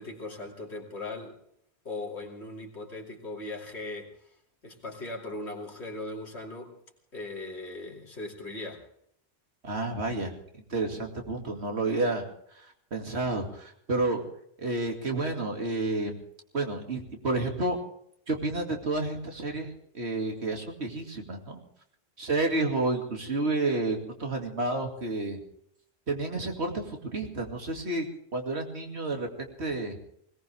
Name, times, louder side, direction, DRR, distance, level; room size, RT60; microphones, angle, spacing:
voice 1, 0.0-1.4 1.8-4.3 4.6-6.8 7.1-8.8, left 2 dB, 90° left, 0 dB, 3.1 m, -39 dB
voice 2, 9.6-10.4 10.7-12.2 12.9-14.2 14.6-16.2 16.5-17.8 18.3-21.6 22.2-25.4 26.1-28.1 28.3-30.0, right 2 dB, 80° right, 3 dB, 2.7 m, -30 dB
20.5 x 18.5 x 3.5 m, 0.69 s
omnidirectional pair, 1.1 m